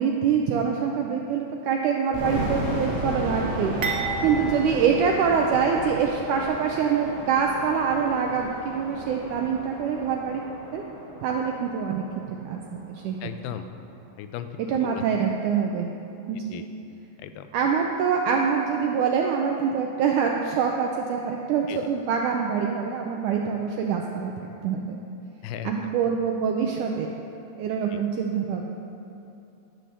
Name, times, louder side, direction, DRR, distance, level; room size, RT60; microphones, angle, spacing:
voice 1, 0.0-3.7 4.2-10.8 11.2-13.2 14.6-15.9 16.3-16.7 17.5-24.3 24.6-25.0 25.6-27.1 27.6-28.6, right 6 dB, 85° right, 1 dB, 1.8 m, -25 dB
sound 1, 2.1-13.0, right 1 dB, 10° right, 2.3 m, -34 dB
sound 2, 3.8-6.0 6.3-6.5 7.4-7.5, right 4 dB, 60° right, 1.5 m, -33 dB
voice 2, 13.2-13.7 14.2-14.5 14.8-15.0 16.5-16.7 17.2-17.5 21.7-21.8 25.4-25.7, left 11 dB, 85° left, 9 dB, 2.6 m, -35 dB
12.0 x 7.6 x 6.7 m, 2.8 s
omnidirectional pair, 4.4 m